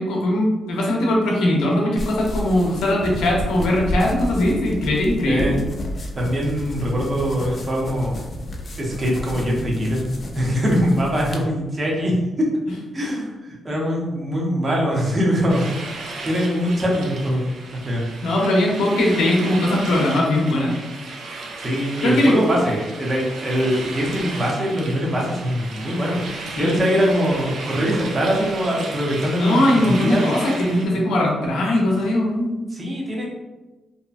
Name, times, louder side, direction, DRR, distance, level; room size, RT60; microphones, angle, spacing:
voice 1, 0.0-5.6 18.2-20.8 22.0-22.3 26.6-26.8 29.3-32.6, left 1 dB, 90° left, -2 dB, 0.6 m, -20 dB
sound 1, 1.9-11.4, left 1 dB, 45° left, 0.4 m, -31 dB
voice 2, 5.2-5.6 6.2-8.2 8.8-12.5 12.9-15.6 16.2-18.1 21.6-30.2 32.7-33.2, equal, 35° right, -2 dB, 0.8 m, -22 dB
sound 2, 15.5-30.9, right 3 dB, 75° right, 0.4 m, -34 dB
2.7 x 2.2 x 2.4 m, 1.1 s
cardioid pair, 80°, 0 cm